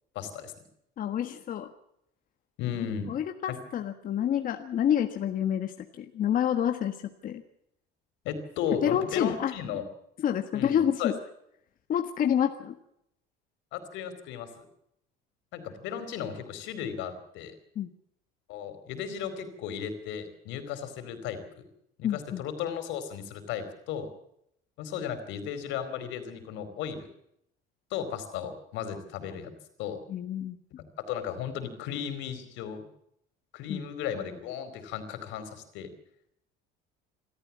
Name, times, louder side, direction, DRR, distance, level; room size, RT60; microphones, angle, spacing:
voice 1, 0.1-0.5 2.6-3.1 3.5-3.6 8.2-9.8 10.5-11.1 13.7-14.6 15.5-17.5 18.5-21.6 22.0-24.1 24.8-27.1 27.9-29.5 29.8-30.0 31.1-32.9 33.5-35.9, left 8 dB, 75° left, 9 dB, 4.5 m, -35 dB
voice 2, 1.0-1.7 3.1-7.0 7.2-7.4 8.8-9.5 10.2-11.1 11.9-12.7 17.7-17.9 22.0-22.4 30.1-30.6 33.7-33.8, left 9 dB, 45° left, 6 dB, 1.5 m, -28 dB
26.5 x 14.0 x 7.4 m, 0.76 s
cardioid pair, 135°, 19 cm